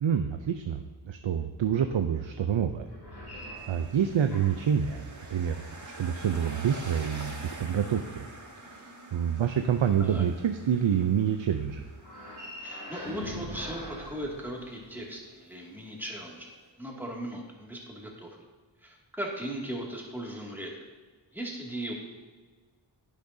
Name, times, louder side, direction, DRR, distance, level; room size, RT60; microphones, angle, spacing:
voice 1, 0.0-2.9 3.3-8.2 8.6-11.8, right 8 dB, 75° right, 7 dB, 0.6 m, -28 dB
sound 1, 2.8-4.8 5.5-7.9 12.0-15.1, left 1 dB, 55° left, 2.6 m, -44 dB
sound 2, 3.6-16.7, right 2 dB, 40° right, 1.3 m, -47 dB
voice 2, 12.6-18.4 18.8-20.7 21.3-21.9, right 1 dB, 5° right, -2 dB, 2.2 m, -38 dB
10.5 x 10.5 x 2.7 m, 1.4 s
wide cardioid pair, 55°, 46 cm